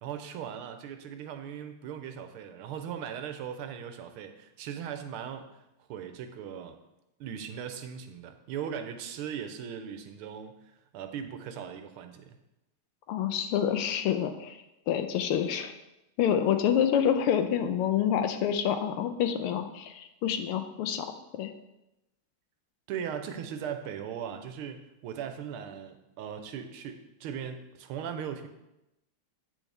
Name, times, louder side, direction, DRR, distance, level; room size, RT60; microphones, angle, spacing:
voice 1, 0.0-5.6 5.9-6.8 7.2-10.5 10.9-12.4 22.9-28.5, right 8 dB, 80° right, 8 dB, 1.6 m, -38 dB
voice 2, 13.1-14.6 14.9-15.7 16.2-21.1 21.4-21.5, left 9 dB, 85° left, 8 dB, 1.6 m, -27 dB
8.6 x 6.3 x 3.4 m, 0.92 s
omnidirectional pair, 2.4 m